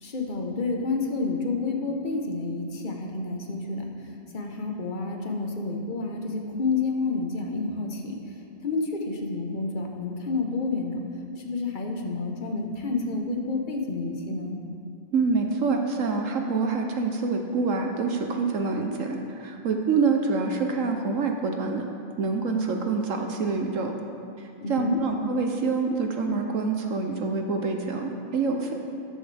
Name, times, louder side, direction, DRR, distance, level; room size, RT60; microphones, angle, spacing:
voice 1, 0.0-3.9 4.3-8.4 8.6-11.0 11.4-14.6 24.6-25.0, left 3 dB, 35° left, 1 dB, 1.2 m, -29 dB
voice 2, 15.1-21.8 22.2-23.9 24.4-28.7, right 4 dB, 65° right, 3 dB, 1.1 m, -26 dB
13.5 x 10.5 x 3.4 m, 2.6 s
omnidirectional pair, 1.5 m